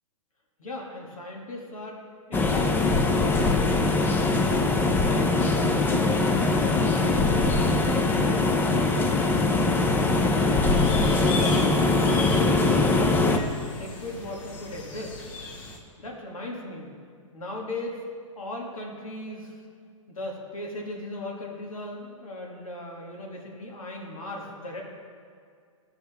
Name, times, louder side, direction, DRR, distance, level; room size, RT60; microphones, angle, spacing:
voice 1, 0.6-2.0 2.3-4.3 5.0-10.1 10.6-11.9 12.6-15.2 16.0-16.9 17.3-17.9 18.4-19.6 20.1-24.8, left 1 dB, 90° left, 0 dB, 1.7 m, -38 dB
sound 1, 2.3-13.4, left 3 dB, 10° left, 0.5 m, -22 dB
sound 2, 10.8-15.8, left 3 dB, 45° left, 1.3 m, -37 dB
14.5 x 5.6 x 3.4 m, 2.2 s
hypercardioid pair, 130°, 17 cm